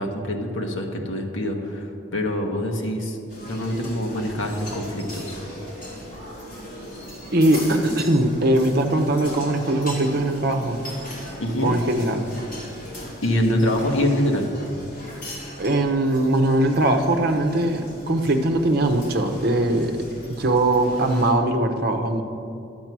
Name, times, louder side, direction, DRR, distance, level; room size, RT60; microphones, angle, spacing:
voice 1, 0.0-3.2 3.4-5.4 11.4-11.7 13.2-14.5, left 1 dB, 75° left, 2 dB, 1.2 m, -25 dB
sound 1, 3.3-21.3, equal, 45° left, 2.5 m, -38 dB
voice 2, 7.3-10.8 11.6-12.3 15.6-20.0 20.4-22.2, right 1 dB, 50° right, 5 dB, 0.8 m, -21 dB
11.0 x 7.6 x 6.0 m, 2.6 s
head